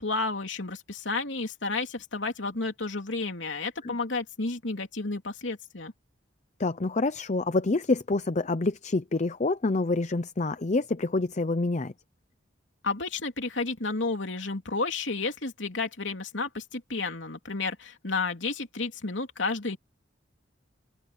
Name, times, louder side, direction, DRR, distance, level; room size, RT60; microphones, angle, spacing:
voice 1, 0.0-5.9 12.8-19.8, left 3 dB, 75° left, 3.2 m, -31 dB
voice 2, 6.6-11.9, left 3 dB, 40° left, 0.6 m, -27 dB
open air
head